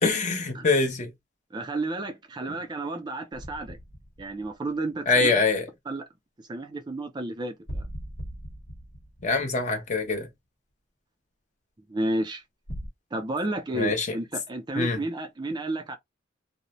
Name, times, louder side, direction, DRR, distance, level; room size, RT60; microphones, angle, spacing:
voice 1, 0.0-1.1 5.1-5.7 9.2-10.3 13.7-14.2 14.8-15.0, left 3 dB, 40° left, 0.7 m, -24 dB
voice 2, 1.5-3.8 4.2-5.3 5.9-6.0 6.5-7.9 11.9-12.4 13.1-16.0, right 2 dB, 25° right, 0.4 m, -31 dB
sound 1, 3.3-5.2 7.7-10.2 12.7-12.9, equal, 65° left, 1.1 m, -39 dB
2.6 x 2.0 x 2.9 m
head